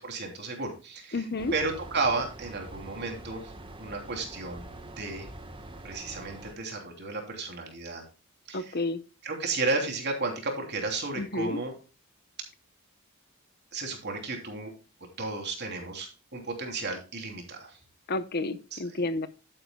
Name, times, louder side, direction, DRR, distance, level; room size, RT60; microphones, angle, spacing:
voice 1, 0.0-1.2 1.5-3.5 3.8-5.3 5.8-8.0 8.5-8.7 9.2-11.8 13.7-14.7 15.2-17.8 18.7-18.8, right 3 dB, 50° right, 3 dB, 3.2 m, -33 dB
voice 2, 1.1-1.5 8.5-9.0 11.1-11.6 18.1-19.3, left 2 dB, 50° left, 12 dB, 0.8 m, -30 dB
sound 1, 1.4-6.5, right 1 dB, 25° right, 1.3 m, -45 dB
11.5 x 9.6 x 2.3 m, 0.31 s
head